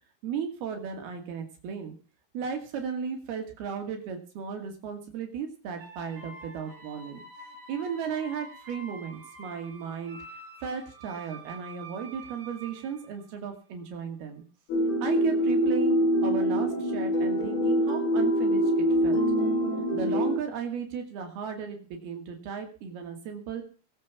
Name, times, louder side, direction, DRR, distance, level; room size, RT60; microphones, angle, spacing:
voice 1, 0.2-1.9 2.3-7.2 7.7-10.2 10.6-14.4 15.0-19.2 19.9-23.6, right 6 dB, 75° right, 5 dB, 4.1 m, -35 dB
sound 1, 5.8-13.7, right 2 dB, 45° right, 6.5 m, -47 dB
sound 2, 14.7-20.4, equal, 80° left, 6.7 m, -24 dB
20.5 x 7.5 x 7.1 m, 0.38 s
omnidirectional pair, 4.5 m